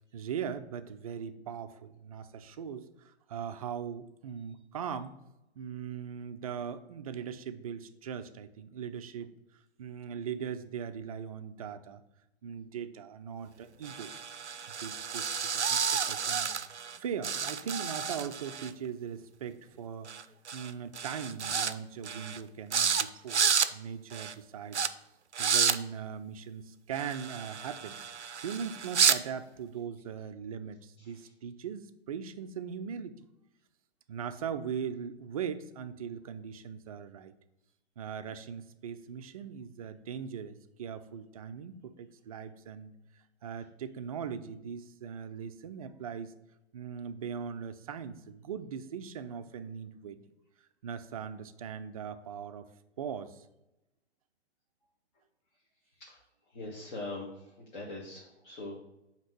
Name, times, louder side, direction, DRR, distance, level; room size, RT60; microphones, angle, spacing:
voice 1, 0.1-5.1 5.5-9.3 9.8-12.0 12.4-14.1 14.7-16.5 16.9-20.1 20.5-24.9 25.4-28.0 28.4-33.2 34.1-37.3 38.0-46.3 46.7-50.2 50.8-52.7 53.0-53.5, right 7 dB, 35° right, 10 dB, 0.4 m, -40 dB
sound 1, 13.8-17.0 17.2-18.7 20.1-20.2 20.5-20.7 21.0-21.7 22.0-22.4 22.7-23.0 23.3-23.7 24.1-24.3 24.7-24.9 25.3-25.8 26.9-29.2, right 6 dB, 90° right, 0.5 m, -30 dB
voice 2, 56.5-58.8, left 2 dB, 40° left, -2 dB, 1.2 m, -42 dB
7.5 x 2.9 x 5.9 m, 0.92 s
figure-of-eight pair, 120°, 34 cm